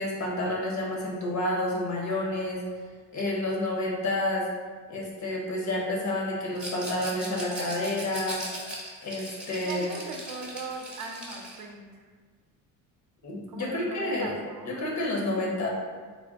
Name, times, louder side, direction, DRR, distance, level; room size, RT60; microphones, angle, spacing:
voice 1, 0.0-2.6 3.1-4.5 4.9-8.4 9.0-9.9 13.2-14.3 14.6-15.7, left 1 dB, 50° left, -2 dB, 1.1 m, -29 dB
Rattle, 6.5-11.6, right 1 dB, 5° right, 1.0 m, -39 dB
voice 2, 9.6-12.1 13.5-14.8, right 3 dB, 60° right, 3 dB, 0.6 m, -39 dB
3.8 x 2.1 x 3.8 m, 1.5 s
cardioid pair, 95°, 37 cm